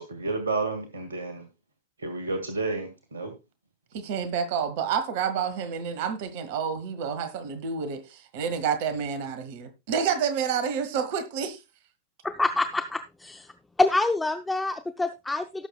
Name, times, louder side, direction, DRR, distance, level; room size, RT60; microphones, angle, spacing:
voice 1, 0.0-1.4 2.0-3.3, right 3 dB, 70° right, 1.9 m, -31 dB
voice 2, 3.9-11.6, right 7 dB, 50° right, 1.4 m, -29 dB
voice 3, 12.2-13.5 13.8-15.7, left 2 dB, 10° left, 0.6 m, -26 dB
17.5 x 7.0 x 2.3 m
figure-of-eight pair, 90°, 0 cm